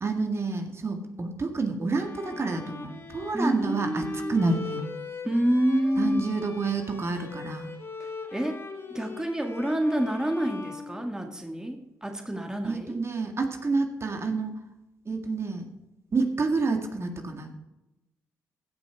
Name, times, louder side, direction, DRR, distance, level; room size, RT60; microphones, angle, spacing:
voice 1, 0.0-4.9 6.0-7.7 12.6-14.5 15.1-15.7 16.1-17.5, right 3 dB, 40° right, 5 dB, 1.9 m, -28 dB
Bowed string instrument, 1.9-11.6, left 4 dB, 40° left, 2.8 m, -41 dB
voice 2, 3.3-4.4 5.2-6.3 8.0-8.6 8.9-13.0, equal, 10° right, 4 dB, 1.7 m, -28 dB
16.0 x 5.8 x 4.6 m, 0.94 s
supercardioid pair, 55°, 7 cm